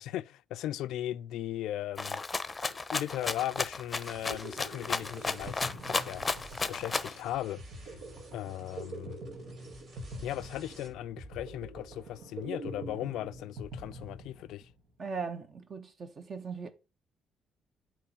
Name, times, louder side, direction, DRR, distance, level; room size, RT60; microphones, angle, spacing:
voice 1, 0.0-2.2 2.7-6.2 6.7-7.6 8.3-9.2 10.2-14.7, left 13 dB, 85° left, 0.3 m, -37 dB
Rattle (instrument), 2.0-7.2, left 3 dB, 25° left, 0.6 m, -33 dB
sound 1, 4.0-10.9, right 2 dB, 60° right, 2.9 m, -55 dB
sound 2, 4.0-14.8, right 1 dB, 90° right, 1.3 m, -45 dB
voice 2, 15.0-16.7, right 5 dB, 45° right, 0.9 m, -39 dB
8.4 x 3.1 x 5.5 m
cardioid pair, 90°, 0 cm